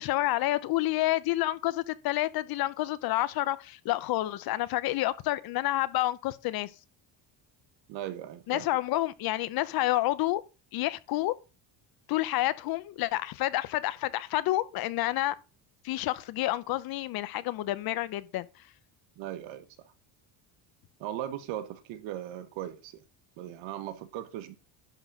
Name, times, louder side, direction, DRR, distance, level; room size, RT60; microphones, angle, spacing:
voice 1, 0.0-6.7 8.5-10.4 10.7-11.3 12.1-15.4 15.8-18.5, left 16 dB, 50° left, 0.7 m, -29 dB
voice 2, 7.9-8.7 19.2-19.7 21.0-23.0 23.4-24.5, right 12 dB, 70° right, 1.5 m, -38 dB
11.0 x 4.1 x 6.1 m
cardioid pair, 175°, 47 cm